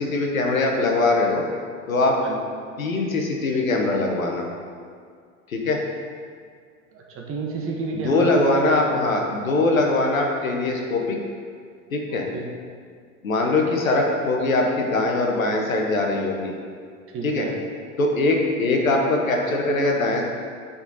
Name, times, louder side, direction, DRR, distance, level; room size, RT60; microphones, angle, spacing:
voice 1, 0.0-1.4 1.9-2.2 2.8-4.4 5.5-5.8 8.0-11.2 11.9-12.2 13.2-16.5 17.2-17.5 18.0-20.2, left 2 dB, 85° left, 1 dB, 1.1 m, -22 dB
voice 2, 6.9-9.1 12.1-12.5 17.1-17.6, right 3 dB, 35° right, 0 dB, 1.3 m, -31 dB
8.1 x 4.2 x 4.1 m, 2.1 s
hypercardioid pair, 85°, 40 cm